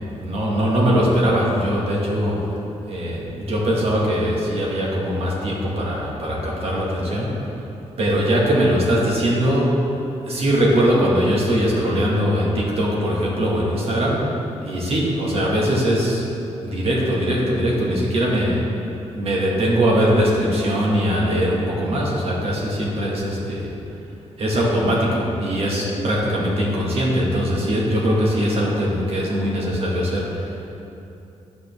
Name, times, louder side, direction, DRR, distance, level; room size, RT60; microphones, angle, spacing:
voice 1, 0.1-2.6 2.9-7.5 8.0-9.9 10.2-16.2 16.6-18.6 19.1-23.7 24.4-30.7, equal, 55° right, -4 dB, 1.5 m, -21 dB
11.5 x 5.1 x 3.4 m, 2.8 s
wide cardioid pair, 165°, 12 cm